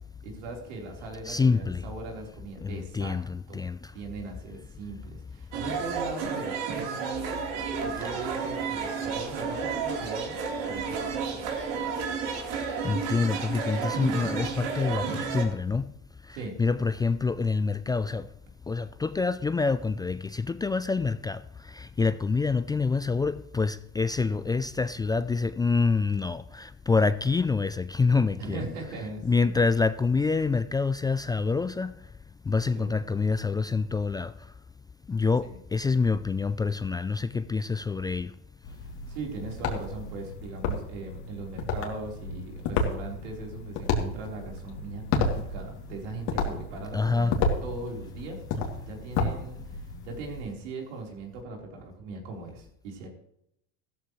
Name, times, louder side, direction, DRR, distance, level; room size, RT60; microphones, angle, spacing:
voice 1, 0.2-3.2 3.5-3.6 3.9-6.6 6.8-11.4 16.3-16.6 28.4-29.5 32.7-33.0 35.4-35.6 38.8-47.4 47.6-48.4 48.8-53.1, right 3 dB, 85° right, 4.2 m, -39 dB
voice 2, 1.3-1.8 2.6-3.8 12.8-15.8 16.6-18.3 18.7-21.4 21.8-28.6 29.2-31.9 32.5-34.3 35.1-38.3 46.9-47.3, left 4 dB, 10° left, 0.4 m, -26 dB
sound 1, 5.5-15.4, right 5 dB, 65° right, 3.8 m, -32 dB
sound 2, 38.6-50.4, left 3 dB, 65° left, 2.9 m, -32 dB
15.0 x 13.5 x 3.2 m
supercardioid pair, 105°, 35 cm